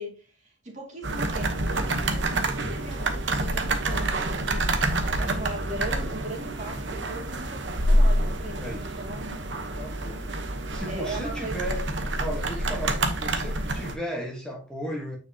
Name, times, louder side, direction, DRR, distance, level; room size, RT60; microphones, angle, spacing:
voice 1, 0.0-9.3 10.9-11.7, right 1 dB, 40° right, 2.5 m, -39 dB
sound 1, 1.0-13.9, right 1 dB, 65° right, 1.1 m, -27 dB
voice 2, 8.6-9.0 9.8-10.2 10.7-11.9 12.2-15.2, equal, 5° left, 1.4 m, -35 dB
9.1 x 5.0 x 2.9 m
head